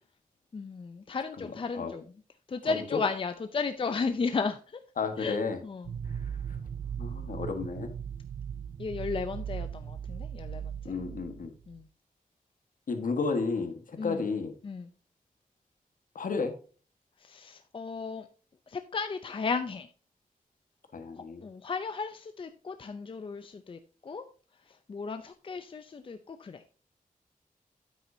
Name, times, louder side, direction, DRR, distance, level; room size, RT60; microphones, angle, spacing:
voice 1, 0.5-2.0 2.5-4.8 5.2-5.4 5.6-5.9 8.8-10.9 11.7-11.9 14.0-14.2 14.6-14.9 17.2-18.3 18.7-19.9 21.4-24.3 24.7-26.6, left 4 dB, 35° left, 8 dB, 0.5 m, -34 dB
voice 2, 1.4-1.9 2.6-3.0 5.0-5.6 6.1-6.3 7.0-7.9 10.8-11.5 12.9-14.5 16.1-16.5 20.9-21.4, left 4 dB, 65° left, 7 dB, 1.4 m, -32 dB
sound 1, 5.8-11.8, right 8 dB, 60° right, 0.4 m, -38 dB
9.1 x 8.1 x 2.7 m, 0.38 s
wide cardioid pair, 175°, 15 cm